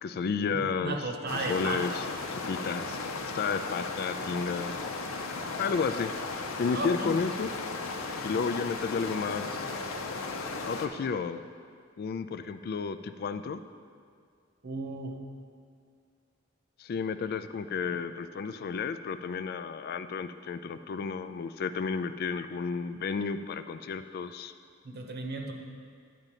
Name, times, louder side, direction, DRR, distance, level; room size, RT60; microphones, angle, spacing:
voice 1, 0.0-1.0 1.3-2.0 2.5-3.0 3.2-4.7 5.6-6.1 6.6-7.5 8.2-9.7 10.7-11.4 12.0-13.6 16.8-24.5, left 5 dB, 50° left, 11 dB, 0.3 m, -32 dB
voice 2, 0.5-1.8 6.7-7.1 14.6-15.1 24.8-25.5, right 2 dB, 50° right, 3 dB, 0.9 m, -34 dB
sound 1, 1.3-10.9, left 3 dB, 85° left, 0.7 m, -36 dB
10.5 x 3.9 x 7.3 m, 2.2 s
head